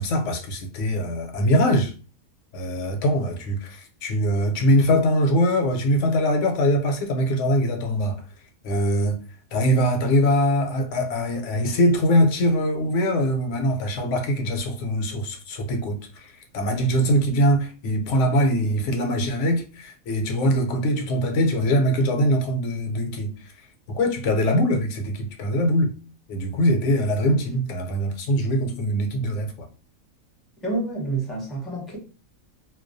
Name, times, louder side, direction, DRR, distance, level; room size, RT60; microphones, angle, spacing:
voice 1, 0.0-1.9 2.5-8.2 8.6-9.2 9.5-25.9 26.3-29.7, equal, 70° left, 0.9 m, -22 dB
voice 2, 30.6-32.0, right 2 dB, ahead, 0.6 m, -28 dB
2.3 x 2.1 x 2.5 m
omnidirectional pair, 1.4 m